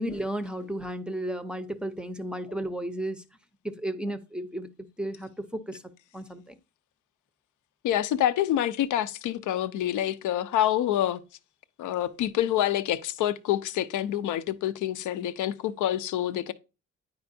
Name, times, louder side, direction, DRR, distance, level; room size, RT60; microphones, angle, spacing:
voice 1, 0.0-3.2 3.6-4.7 5.0-5.8 6.1-6.5, right 1 dB, 5° right, 0.5 m, -33 dB
voice 2, 7.8-11.2 11.8-16.5, left 12 dB, 80° left, 0.6 m, -27 dB
9.5 x 4.5 x 2.6 m
cardioid pair, 90°, 30 cm